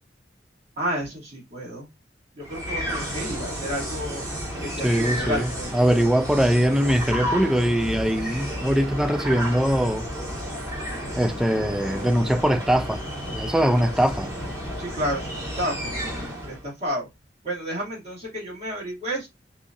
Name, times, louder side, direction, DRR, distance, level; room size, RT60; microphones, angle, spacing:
voice 1, 0.8-1.9 2.3-4.2 4.6-5.7 13.7-13.9 14.8-15.9 16.4-17.1 17.4-19.3, equal, 35° right, 2.3 m, -31 dB
sound 1, 2.4-16.6, equal, 20° right, 1.8 m, -32 dB
voice 2, 4.8-10.0 11.2-13.0 13.3-14.3, equal, 5° right, 0.3 m, -22 dB
4.8 x 2.6 x 2.5 m
head